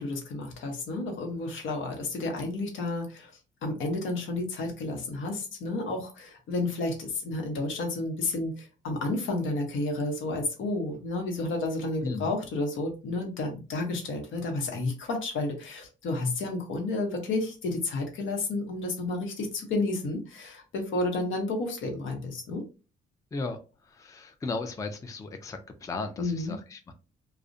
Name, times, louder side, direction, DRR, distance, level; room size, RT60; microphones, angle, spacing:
voice 1, 0.0-3.3 3.6-22.6 26.2-26.5, left 2 dB, 80° left, 2 dB, 0.9 m, -31 dB
voice 2, 12.0-12.3 23.3-26.9, left 3 dB, 15° left, 7 dB, 0.3 m, -36 dB
2.4 x 2.0 x 2.5 m, 0.33 s
cardioid pair, 90°, 20 cm